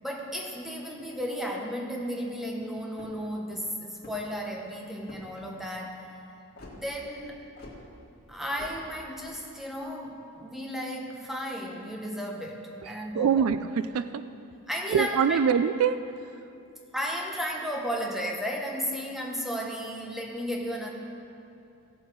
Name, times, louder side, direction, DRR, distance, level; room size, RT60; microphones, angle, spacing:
voice 1, 0.0-6.1 6.6-7.4 8.3-13.4 14.7-15.4 16.9-20.9, equal, ahead, 0 dB, 1.1 m, -34 dB
sound 1, 2.9-3.3 3.9-4.4 5.0-5.4 6.6-6.8 7.6-7.8 8.5-8.8, left 2 dB, 45° left, 2.0 m, -46 dB
voice 2, 12.8-14.2 14.9-16.0, right 7 dB, 70° right, 12 dB, 0.3 m, -25 dB
16.0 x 7.3 x 4.6 m, 2.6 s
head